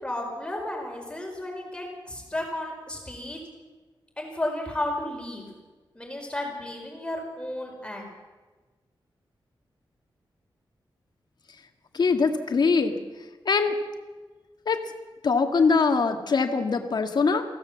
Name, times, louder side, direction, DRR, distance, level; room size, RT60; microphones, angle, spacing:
voice 1, 0.0-3.4 4.2-5.5 5.9-8.1, left 1 dB, 10° left, 1 dB, 4.8 m, -33 dB
voice 2, 11.9-12.9 13.5-13.8 14.7-14.8 15.2-17.4, left 4 dB, 60° left, 5 dB, 2.0 m, -22 dB
24.0 x 16.0 x 7.3 m, 1.3 s
wide cardioid pair, 130°, 8 cm